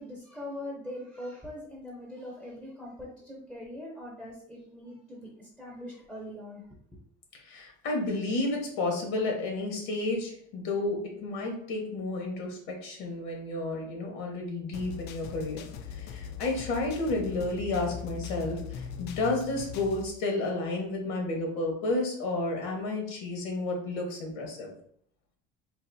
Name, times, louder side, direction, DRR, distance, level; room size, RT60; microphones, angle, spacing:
voice 1, 0.0-6.6, left 1 dB, ahead, -3 dB, 0.6 m, -42 dB
voice 2, 7.3-24.7, left 2 dB, 80° left, 1 dB, 1.2 m, -31 dB
sound 1, 14.7-20.1, left 7 dB, 55° left, 0.4 m, -40 dB
4.0 x 2.5 x 2.6 m, 0.64 s
cardioid pair, 150°, 21 cm